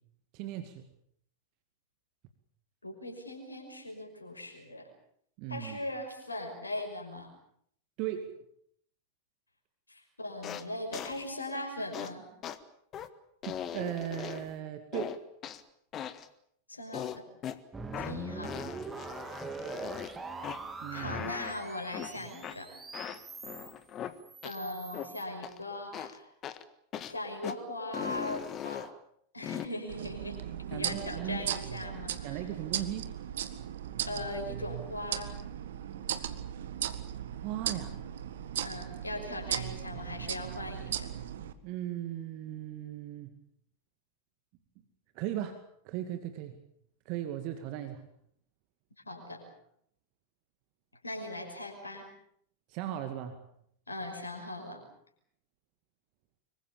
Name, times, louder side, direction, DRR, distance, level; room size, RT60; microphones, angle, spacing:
voice 1, 0.3-0.8 5.4-5.8 8.0-8.4 13.4-15.2 20.8-21.3 30.7-31.4 32.2-33.1 37.4-38.0 41.6-43.3 45.1-46.6 47.1-48.0 52.7-53.4, right 11 dB, 45° right, 8 dB, 2.2 m, -37 dB
voice 2, 2.8-4.9 5.5-7.3 9.9-12.3 16.7-17.3 17.9-18.7 20.9-22.7 24.4-26.3 27.1-28.9 29.3-30.4 30.7-32.4 34.0-35.3 38.6-41.1 49.1-49.4 51.0-52.1 53.9-54.8, left 1 dB, 80° left, 3 dB, 5.8 m, -39 dB
sound 1, 10.4-10.6 10.9-11.2 11.9-12.1 12.4-12.6 12.9-13.1 13.4-14.5 14.9-15.6 15.9-16.3 16.9-17.6 17.9-18.2 18.4-20.1 20.4-20.6 20.9-21.5 21.9-22.1 22.4-22.6 22.9-24.1 24.4-24.6 24.9-25.1 25.4-25.6 25.9-26.2 26.4-26.6 26.9-27.2 27.4-27.6 27.9-28.9 29.4-29.7, left 10 dB, 30° left, 1.6 m, -39 dB
sound 2, 17.7-23.7 24.2-25.2, right 3 dB, 15° right, 3.2 m, -42 dB
sound 3, 29.9-41.5, right 10 dB, 60° right, 1.7 m, -37 dB
25.5 x 23.5 x 7.2 m, 0.69 s
figure-of-eight pair, 90°, 0 cm